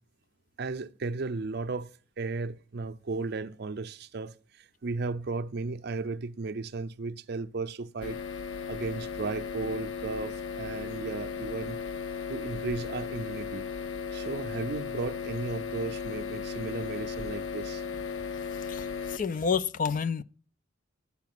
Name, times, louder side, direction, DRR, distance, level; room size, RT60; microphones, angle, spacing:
voice 1, 0.6-1.9 2.2-8.2 8.7-11.8 12.3-13.6 14.1-17.9, right 3 dB, 55° right, 0.5 m, -35 dB
sound 1, 8.0-19.2, left 6 dB, 85° left, 0.6 m, -36 dB
voice 2, 18.5-20.2, left 6 dB, 45° left, 0.4 m, -30 dB
10.5 x 5.8 x 5.9 m
head